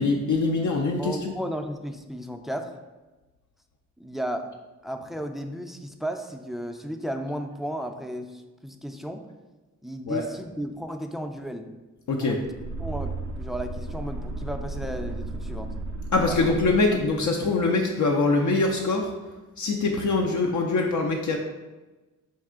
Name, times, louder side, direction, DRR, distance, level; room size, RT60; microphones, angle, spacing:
voice 1, 0.0-1.3 10.1-10.2 12.1-12.4 16.1-19.2 19.6-21.4, left 3 dB, 65° left, 1 dB, 0.5 m, -23 dB
voice 2, 1.0-2.7 4.0-4.4 4.8-9.2 9.8-11.7 12.2-12.5 12.8-15.7 16.3-16.6 16.9-17.0, equal, ahead, 6 dB, 0.4 m, -34 dB
sound 1, 12.4-17.3, right 2 dB, 60° right, 0.5 m, -34 dB
5.3 x 2.4 x 3.6 m, 1.1 s
cardioid pair, 65°, 32 cm